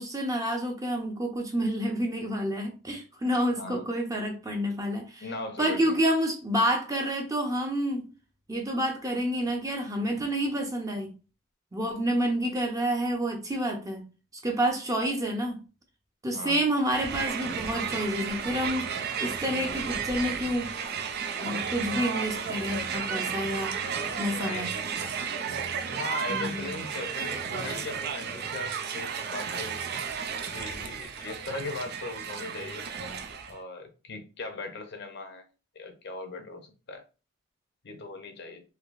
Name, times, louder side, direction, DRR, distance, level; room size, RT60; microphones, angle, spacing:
voice 1, 0.0-5.3 5.6-8.1 8.5-11.1 11.7-14.0 14.4-15.6 16.2-18.9 19.2-20.7 21.4-23.8 24.0-24.7 26.3-26.8, equal, 15° right, 0.7 m, -29 dB
voice 2, 3.5-3.9 5.2-5.9 16.3-16.6 24.4-24.8 25.2-25.4 26.0-29.8 30.5-32.8 33.5-35.4 35.7-37.0 37.8-38.6, left 3 dB, 60° left, 0.6 m, -39 dB
Crowd, 16.9-33.6, right 6 dB, 55° right, 0.4 m, -33 dB
3.3 x 2.7 x 2.5 m
head